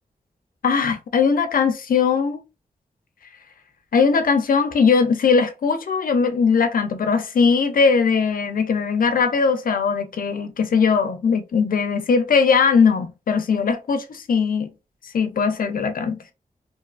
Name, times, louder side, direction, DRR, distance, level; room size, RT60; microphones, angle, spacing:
voice 1, 0.6-2.4 3.9-14.7 15.1-16.2, left 5 dB, 75° left, 0.4 m, -20 dB
2.5 x 2.3 x 2.4 m
wide cardioid pair, 100°, 15 cm